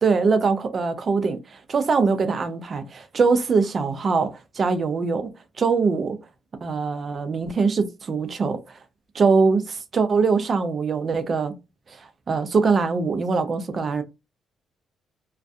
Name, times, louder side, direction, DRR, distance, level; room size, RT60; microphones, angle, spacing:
voice 1, 0.0-5.3 5.6-6.2 6.6-8.8 9.1-11.5 11.9-14.0, right 4 dB, 45° right, 0.5 m, -22 dB
2.5 x 2.3 x 2.3 m
cardioid pair, 90°, 0 cm